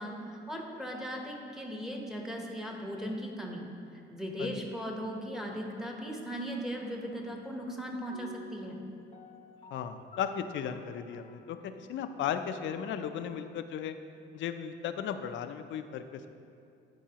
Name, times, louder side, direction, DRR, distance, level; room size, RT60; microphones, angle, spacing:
voice 1, 0.0-3.6 3.9-8.8, equal, ahead, 0 dB, 0.9 m, -38 dB
sound 1, 6.5-13.0, left 6 dB, 30° left, 0.7 m, -54 dB
voice 2, 9.7-14.0 14.3-16.3, left 8 dB, 70° left, 9 dB, 0.4 m, -36 dB
10.5 x 4.6 x 2.9 m, 2.5 s
cardioid pair, 90°, 20 cm